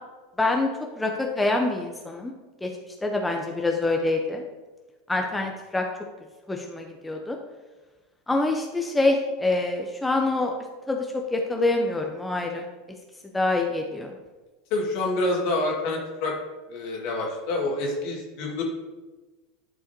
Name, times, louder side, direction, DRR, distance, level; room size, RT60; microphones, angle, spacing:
voice 1, 0.4-0.7 1.0-2.3 2.6-2.7 3.0-4.4 5.1-5.8 6.5-7.4 8.3-10.5 10.9-11.1 11.3-12.6 13.3-14.1, left 2 dB, 10° left, 1 dB, 0.8 m, -25 dB
voice 2, 14.7-16.4 16.7-18.6, left 2 dB, 55° left, -1 dB, 2.0 m, -27 dB
11.0 x 4.8 x 2.8 m, 1.2 s
hypercardioid pair, 85°, 0 cm